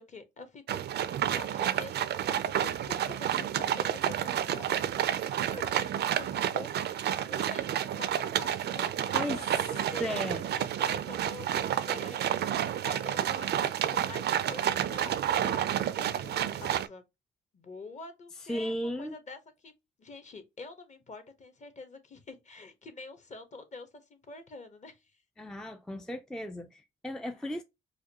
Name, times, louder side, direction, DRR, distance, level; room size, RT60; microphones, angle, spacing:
voice 1, 0.0-5.1 5.5-6.7 7.3-17.0 17.5-18.7 19.0-19.7 20.0-25.0, left 3 dB, 35° left, 1.0 m, -47 dB
sound 1, 0.7-16.9, right 10 dB, 55° right, 0.4 m, -30 dB
voice 2, 9.1-10.5 18.5-19.2 25.4-27.6, left 1 dB, 5° left, 0.4 m, -36 dB
4.8 x 2.2 x 2.7 m
cardioid pair, 90°, 20 cm